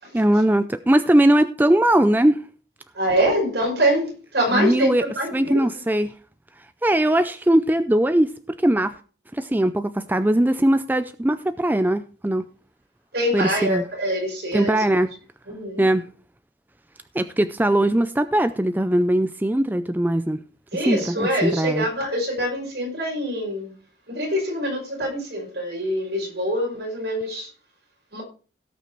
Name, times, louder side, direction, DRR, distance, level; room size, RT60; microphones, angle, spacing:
voice 1, 0.1-2.4 4.5-5.0 5.3-6.1 6.8-8.3 8.6-8.9 9.3-12.5 13.3-13.8 14.5-15.1 15.8-16.0 17.1-20.4 20.7-21.9, right 1 dB, 10° right, 0.4 m, -20 dB
voice 2, 2.9-5.6 13.1-15.0 15.5-15.8 20.7-23.7 24.1-27.5 28.1-28.2, equal, 70° right, 5.5 m, -25 dB
17.0 x 5.9 x 4.5 m
head